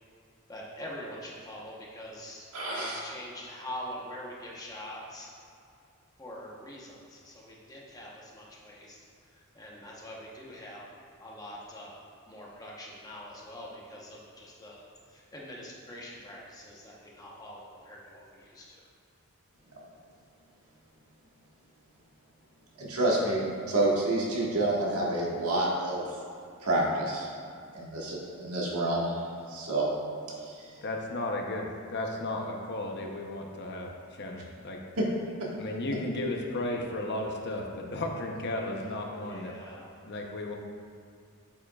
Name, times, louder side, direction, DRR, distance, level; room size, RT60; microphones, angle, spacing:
voice 1, 0.5-5.3 6.2-9.0 9.3-10.9 11.2-11.9 12.3-14.8 15.1-18.8 39.1-40.0, left 1 dB, 15° left, -4 dB, 1.0 m, -44 dB
voice 2, 2.5-3.0 22.8-26.0 26.6-27.3 27.7-29.9 30.4-30.7, right 2 dB, 75° right, -4 dB, 1.6 m, -28 dB
voice 3, 30.8-34.8 35.6-39.6 40.0-40.6, left 1 dB, 50° left, 1 dB, 0.8 m, -34 dB
8.7 x 7.4 x 2.4 m, 2.3 s
head